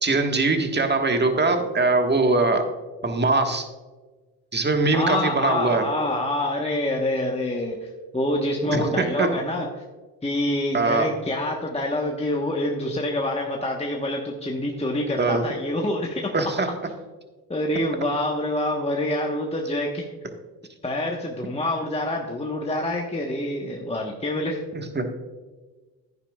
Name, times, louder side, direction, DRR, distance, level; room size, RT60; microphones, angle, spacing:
voice 1, 0.0-2.7 3.0-3.6 4.5-5.8 8.7-9.3 10.7-11.1 15.2-15.4 16.3-16.7 24.7-25.1, right 3 dB, 25° right, 5 dB, 1.5 m, -22 dB
voice 2, 4.9-7.8 8.1-9.7 10.2-16.3 17.5-20.0 20.8-24.6, left 1 dB, 15° left, 0 dB, 1.2 m, -26 dB
11.0 x 9.6 x 2.4 m, 1.3 s
supercardioid pair, 65°, 45 cm